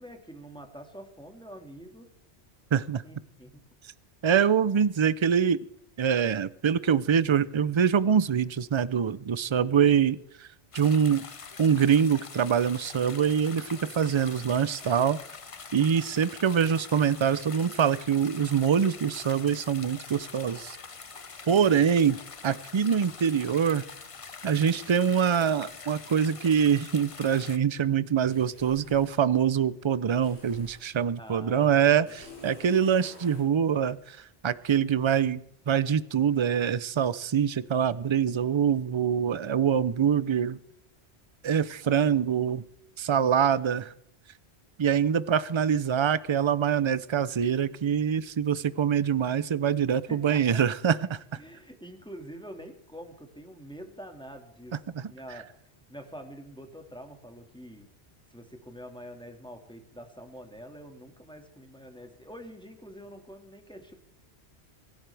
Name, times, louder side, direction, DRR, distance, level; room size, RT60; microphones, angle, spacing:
voice 1, 0.0-2.1 3.0-3.6 31.2-32.1 48.7-48.8 49.9-50.7 51.3-54.8 55.1-55.5 55.9-57.9 58.3-63.9, equal, 5° left, 4 dB, 1.9 m, -46 dB
voice 2, 2.7-3.0 4.2-5.6 6.0-10.2 10.7-11.2 11.6-15.2 15.7-20.8 21.5-22.2 22.4-23.8 24.4-34.2 34.4-40.6 41.4-42.6 43.0-43.9 44.8-51.2 54.9-55.0, right 8 dB, 45° right, 17 dB, 0.4 m, -24 dB
sound 1, 10.7-27.6, left 5 dB, 35° left, 0.7 m, -44 dB
sound 2, 28.3-29.2 30.2-30.9 32.1-33.5, left 1 dB, 75° left, 4.1 m, -50 dB
25.0 x 11.5 x 3.4 m, 0.77 s
omnidirectional pair, 1.1 m